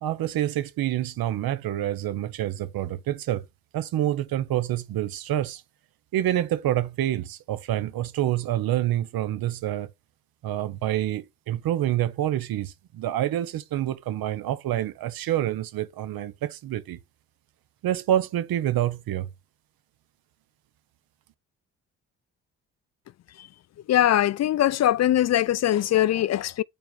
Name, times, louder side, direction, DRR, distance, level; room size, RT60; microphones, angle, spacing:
voice 1, 0.0-3.4 3.7-5.6 6.1-9.9 10.4-17.0 17.8-19.3, right 12 dB, 70° right, 1.0 m, -27 dB
voice 2, 23.9-26.6, left 12 dB, 45° left, 0.4 m, -21 dB
7.0 x 4.4 x 4.0 m
hypercardioid pair, 50°, 37 cm